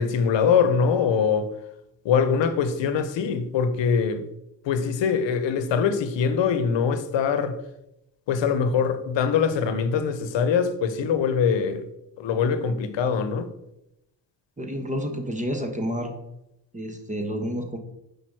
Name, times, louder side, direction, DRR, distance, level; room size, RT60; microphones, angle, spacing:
voice 1, 0.0-1.5 2.0-4.2 4.6-7.6 8.3-11.8 12.2-13.5, left 6 dB, 70° left, 1.0 m, -23 dB
voice 2, 14.6-16.1 16.7-17.8, equal, 15° right, 1.2 m, -29 dB
6.0 x 5.3 x 4.7 m
cardioid pair, 85°, 46 cm